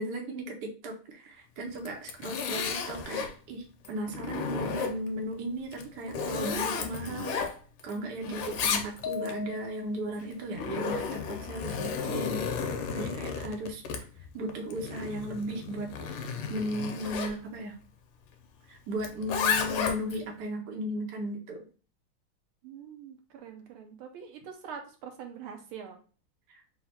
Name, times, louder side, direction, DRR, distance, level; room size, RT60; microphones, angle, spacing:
voice 1, 0.0-7.4 7.8-12.4 12.9-13.8 14.3-17.8 18.7-21.6, right 1 dB, 60° right, 2 dB, 1.3 m, -36 dB
Zipper (clothing), 1.7-3.3 3.9-5.2 5.7-7.9 8.2-9.3 10.2-17.4 19.0-20.2, left 6 dB, 85° left, 1.6 m, -33 dB
voice 2, 8.2-8.7 22.6-26.0, right 7 dB, 80° right, 3 dB, 1.7 m, -44 dB
sound 1, 9.0-10.2, left 9 dB, 70° left, 1.4 m, -38 dB
4.3 x 2.4 x 4.2 m, 0.38 s
omnidirectional pair, 2.3 m